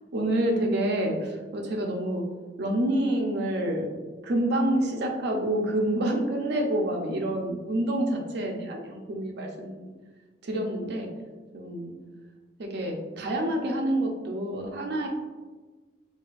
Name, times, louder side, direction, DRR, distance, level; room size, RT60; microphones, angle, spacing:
voice 1, 0.1-2.2 2.6-3.9 4.2-9.9 10.4-11.1 11.5-11.9 12.6-15.1, right 1 dB, 65° right, 1 dB, 0.5 m, -27 dB
4.1 x 2.3 x 2.4 m, 1.3 s
head